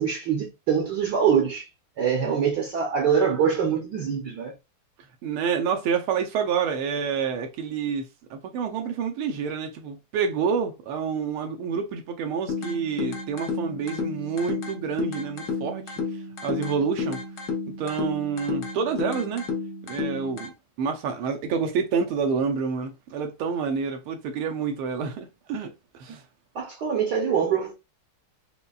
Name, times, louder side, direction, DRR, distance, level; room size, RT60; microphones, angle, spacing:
voice 1, 0.0-1.7 2.0-4.5 26.5-27.7, right 7 dB, 60° right, 1.2 m, -24 dB
voice 2, 5.2-15.9 16.4-17.2 17.8-19.5 19.8-20.5 20.8-25.7 26.0-26.2, right 6 dB, 80° right, 1.5 m, -28 dB
sound 1, 12.5-20.5, left 5 dB, 65° left, 0.7 m, -32 dB
5.3 x 2.2 x 2.3 m
omnidirectional pair, 2.3 m